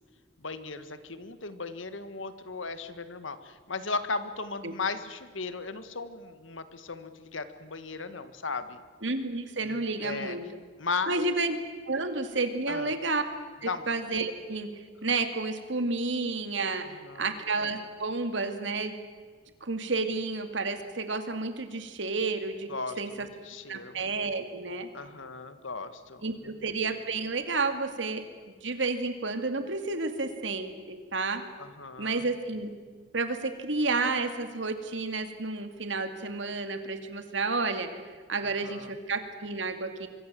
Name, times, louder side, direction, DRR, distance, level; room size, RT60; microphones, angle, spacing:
voice 1, 0.4-8.8 9.6-10.4 10.8-11.3 12.7-12.9 13.6-13.8 16.9-17.3 22.7-24.0 24.9-26.6 31.6-32.2 38.4-38.9, left 4 dB, 80° left, 11 dB, 1.7 m, -36 dB
voice 2, 9.0-10.5 11.1-11.6 11.9-13.2 13.6-16.9 17.2-19.0 19.6-23.3 23.7-24.9 26.2-28.2 28.6-31.4 32.0-32.8 33.1-37.9 38.3-40.1, right 3 dB, 70° right, 8 dB, 2.4 m, -31 dB
25.5 x 23.5 x 7.7 m, 1.6 s
head